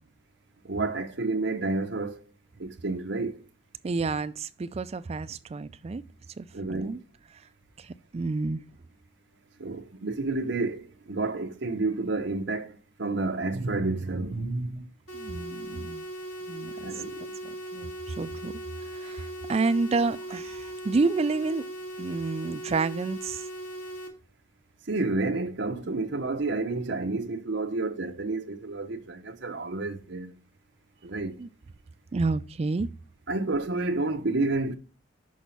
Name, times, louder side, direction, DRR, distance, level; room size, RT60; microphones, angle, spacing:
voice 1, 0.6-2.3 2.6-3.4 6.5-7.0 9.6-14.9 16.8-17.3 24.9-30.3 31.0-31.4 33.3-34.7, right 3 dB, 60° right, 0.8 m, -30 dB
voice 2, 3.8-6.0 6.4-7.0 7.8-8.6 15.1-16.0 16.5-16.7 17.4-18.5 18.9-21.7 22.0-23.5 31.4-31.5 32.1-32.9, right 3 dB, 30° right, 0.3 m, -29 dB
sound 1, 15.1-24.1, right 1 dB, 90° left, 1.9 m, -39 dB
6.2 x 5.1 x 5.6 m
head